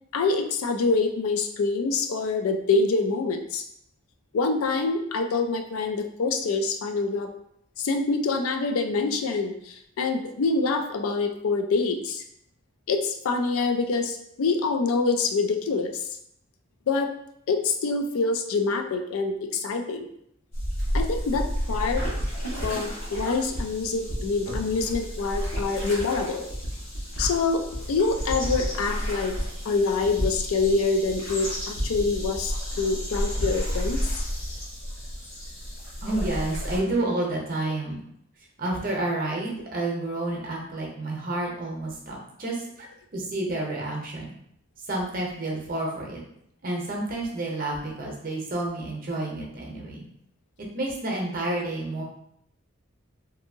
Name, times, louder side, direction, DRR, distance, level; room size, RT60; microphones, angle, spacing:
voice 1, 0.1-3.6 4.3-7.3 7.8-12.2 12.9-16.0 16.9-17.1 17.5-20.1 20.9-22.0 22.6-26.5 27.2-27.6 27.9-29.4 29.7-34.2, left 4 dB, 85° left, 5 dB, 0.4 m, -26 dB
sound 1, 20.5-36.8, equal, 65° left, 1.2 m, -31 dB
voice 2, 36.0-38.0 38.6-42.6 43.1-44.3 44.9-46.2 46.6-50.0 50.7-52.0, right 2 dB, 40° right, -1 dB, 0.7 m, -30 dB
2.7 x 2.6 x 2.6 m, 0.72 s
head